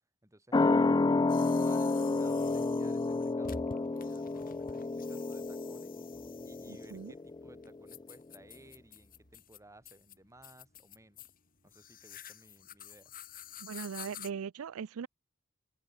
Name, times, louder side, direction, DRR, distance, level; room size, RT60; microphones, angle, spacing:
voice 1, 0.2-1.0 1.4-6.0 6.4-11.2 11.6-13.1, right 1 dB, 15° right, 4.8 m, -58 dB
sound 1, 0.5-7.6 7.9-8.0, left 3 dB, 20° left, 0.4 m, -30 dB
sound 2, 1.3-14.3, left 6 dB, 45° left, 4.4 m, -50 dB
voice 2, 6.7-7.1 13.6-15.1, right 7 dB, 80° right, 0.4 m, -40 dB
head